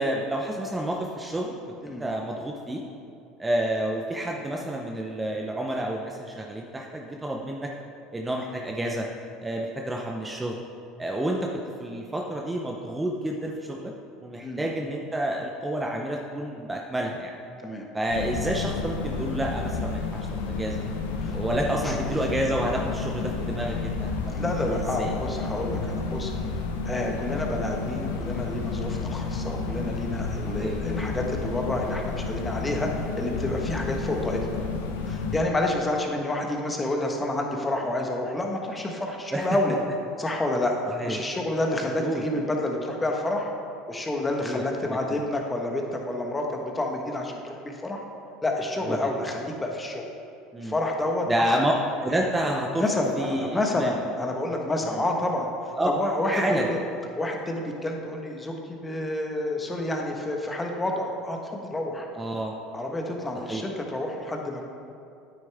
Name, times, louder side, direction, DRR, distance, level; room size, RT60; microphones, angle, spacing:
voice 1, 0.0-2.8 3.4-7.7 8.1-9.1 9.4-10.6 11.0-13.9 14.2-17.4 17.9-20.8 21.3-24.3 24.7-25.1 30.6-30.8 33.8-33.9 39.3-39.5 41.0-41.2 42.0-42.2 44.4-44.6 48.9-49.1 50.5-50.7 51.3-51.7 52.0-52.8 53.2-53.9 54.9-55.0 55.8-55.9 56.3-56.7 62.1-62.5 63.5-63.6, right 1 dB, 15° right, 0 dB, 0.7 m, -29 dB
sound 1, 18.1-35.4, left 4 dB, 90° left, 0.8 m, -31 dB
voice 2, 24.3-26.3 26.8-32.9 33.2-34.6 35.0-39.8 40.2-40.8 41.0-43.5 43.9-48.0 48.4-50.0 50.6-51.6 52.8-55.5 55.8-56.8 57.1-62.1 62.7-64.6, left 1 dB, 15° left, 1 dB, 1.3 m, -29 dB
9.1 x 8.9 x 3.5 m, 2.5 s
supercardioid pair, 95°, 0 cm